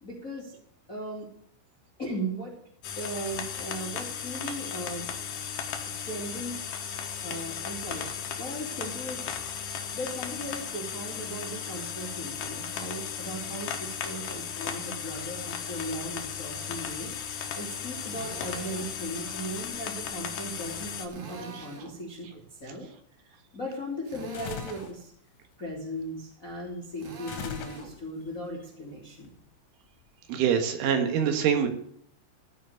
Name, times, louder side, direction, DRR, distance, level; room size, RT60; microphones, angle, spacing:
voice 1, 0.0-0.6 0.9-1.3 2.0-2.6 2.9-5.1 5.9-6.6 7.2-8.1 8.4-9.3 9.9-17.1 17.5-22.9 23.2-25.1 25.6-29.3, right 1 dB, 35° left, -2 dB, 1.3 m, -37 dB
sound 1, 2.8-21.1, left 7 dB, 70° left, 2.0 m, -36 dB
Drill, 18.1-18.9 21.1-22.0 24.0-24.9 27.0-27.9, right 4 dB, 55° right, 3.5 m, -44 dB
sound 2, 24.3-25.0 27.3-28.2, left 7 dB, 90° left, 4.0 m, -39 dB
voice 2, 30.3-31.7, right 8 dB, 80° right, 6 dB, 3.9 m, -24 dB
14.5 x 5.2 x 9.1 m, 0.65 s
omnidirectional pair, 5.6 m